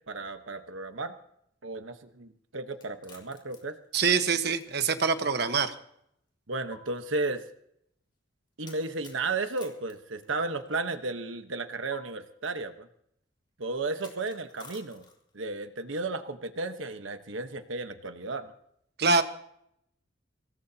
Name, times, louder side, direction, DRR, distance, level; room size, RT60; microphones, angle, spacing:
voice 1, 0.1-1.1 1.6-3.8 6.5-7.4 8.6-12.9 13.6-15.1 15.3-18.5, right 3 dB, 80° right, 8 dB, 1.2 m, -34 dB
sound 1, 2.7-5.4 5.7-5.8 6.7-6.8 8.6-10.8 11.9-12.0 13.9-15.4, left 4 dB, 25° left, 3.8 m, -52 dB
voice 2, 3.9-5.7 19.0-19.2, right 5 dB, 55° right, 8 dB, 1.3 m, -24 dB
25.0 x 18.0 x 2.9 m, 0.72 s
head